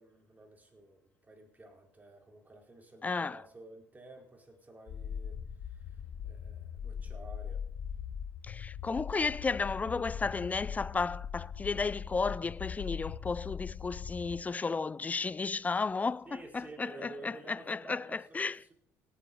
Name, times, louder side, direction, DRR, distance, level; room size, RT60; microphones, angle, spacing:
voice 1, 0.0-7.6 16.2-18.7, right 2 dB, 20° right, 4.5 m, -52 dB
voice 2, 3.0-3.4 8.4-18.6, left 4 dB, 20° left, 0.4 m, -33 dB
sound 1, 4.9-14.4, left 8 dB, 60° left, 1.1 m, -41 dB
sound 2, 6.0-16.6, left 3 dB, 45° right, 3.6 m, -71 dB
18.0 x 8.4 x 5.4 m
supercardioid pair, 70°, 7 cm